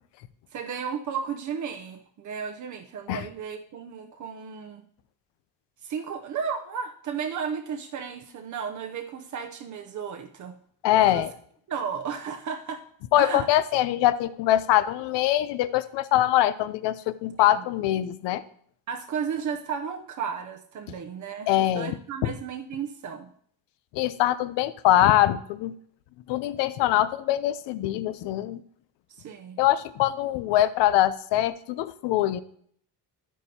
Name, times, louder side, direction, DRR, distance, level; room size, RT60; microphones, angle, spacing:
voice 1, 0.5-4.8 5.8-10.6 10.9-11.3 11.7-12.8 13.1-13.5 17.4-17.6 18.9-23.3 29.2-29.6, right 7 dB, 45° right, 5 dB, 0.7 m, -34 dB
voice 2, 10.8-11.3 13.1-18.4 21.5-22.0 22.2-22.3 23.9-25.7 26.3-28.6 29.6-32.4, left 13 dB, 80° left, 15 dB, 0.6 m, -23 dB
10.5 x 9.3 x 2.8 m, 0.62 s
cardioid pair, 140°, 42 cm